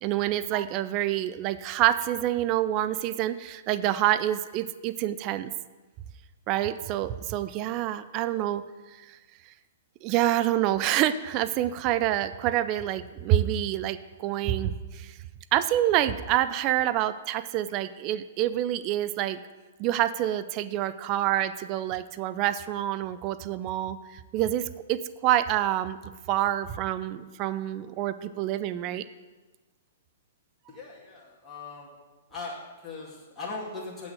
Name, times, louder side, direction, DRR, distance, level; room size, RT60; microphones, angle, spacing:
voice 1, 0.0-5.5 6.5-8.6 9.0-9.2 10.0-15.2 15.5-19.4 19.8-26.0 26.3-29.1, right 13 dB, 35° right, 13 dB, 0.5 m, -27 dB
voice 2, 30.7-31.9 32.3-34.1, left 3 dB, 10° left, -8 dB, 2.3 m, -39 dB
7.8 x 6.2 x 7.7 m, 1.2 s
hypercardioid pair, 130°, 0 cm